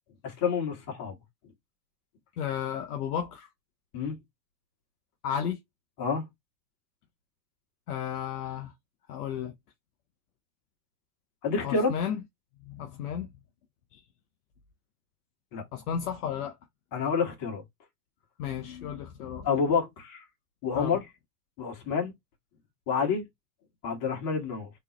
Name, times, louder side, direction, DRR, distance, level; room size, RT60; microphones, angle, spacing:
voice 1, 0.2-1.1 3.9-4.2 6.0-6.2 11.4-11.9 15.5-15.6 16.9-17.6 19.4-20.2 20.6-21.0 21.6-22.1 22.9-23.2 23.8-24.7, left 5 dB, 45° left, 2.2 m, -28 dB
voice 2, 2.4-3.5 5.2-5.6 7.9-8.7 9.1-9.5 11.6-12.2 12.6-13.3 13.9-14.0 15.7-16.6 18.4-19.5 20.7-21.0, left 8 dB, 70° left, 0.9 m, -33 dB
3.4 x 3.2 x 3.2 m
hypercardioid pair, 95°, 47 cm